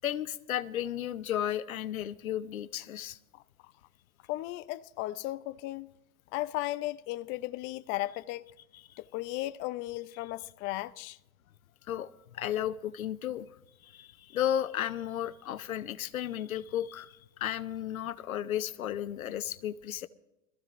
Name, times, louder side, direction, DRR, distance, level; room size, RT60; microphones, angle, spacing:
voice 1, 0.0-3.2 11.9-13.5 13.8-20.1, left 11 dB, 80° left, 0.8 m, -34 dB
voice 2, 4.3-5.9 6.3-8.5 9.0-11.2, left 17 dB, 30° left, 0.4 m, -35 dB
22.0 x 14.5 x 2.5 m
hypercardioid pair, 100°, 41 cm